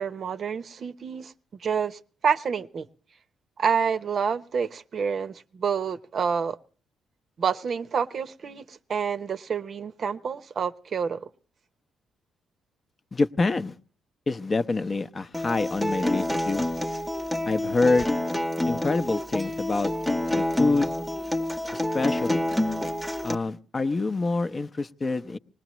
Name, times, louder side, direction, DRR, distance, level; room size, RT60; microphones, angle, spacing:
voice 1, 0.0-1.3 1.6-2.9 3.6-6.6 7.4-11.3, right 6 dB, 50° right, 0.7 m, -28 dB
voice 2, 13.1-13.7 14.3-16.6 17.5-18.1 18.7-19.9 20.3-20.9 21.9-22.4 23.2-25.4, left 3 dB, 30° left, 0.7 m, -26 dB
Acoustic guitar, 15.3-23.4, left 1 dB, ahead, 0.9 m, -27 dB
24.5 x 19.5 x 3.0 m
cardioid pair, 90°, 0 cm